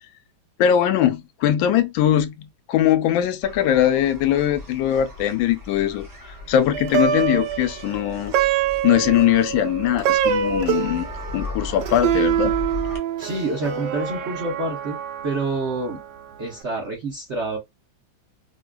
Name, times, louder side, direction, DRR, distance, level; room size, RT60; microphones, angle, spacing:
voice 1, 0.6-6.1 6.5-8.3 8.8-11.1 11.3-12.5, left 11 dB, 75° left, 1.3 m, -21 dB
sound 1, 3.4-13.0, left 2 dB, 20° right, 0.5 m, -37 dB
Plucked string instrument, 6.7-16.2, right 9 dB, 70° right, 1.1 m, -25 dB
voice 2, 13.2-15.0 15.2-16.0 16.4-17.6, right 2 dB, 55° right, 0.8 m, -27 dB
4.9 x 2.3 x 2.2 m
omnidirectional pair, 2.2 m